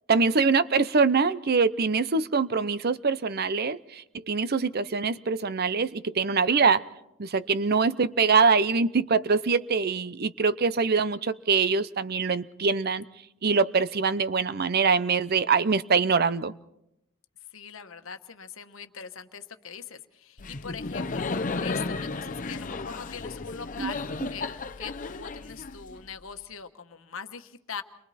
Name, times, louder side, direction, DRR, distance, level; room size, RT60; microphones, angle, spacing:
voice 1, 0.1-6.8 7.2-13.0 13.4-16.5 23.8-23.9, right 5 dB, 50° right, 15 dB, 0.7 m, -24 dB
voice 2, 17.5-21.3 21.6-24.5 24.8-27.8, left 6 dB, 75° left, 8 dB, 1.2 m, -41 dB
Laughter, 20.4-26.2, left 3 dB, 40° left, 0.8 m, -33 dB
29.5 x 23.0 x 4.2 m, 0.81 s
head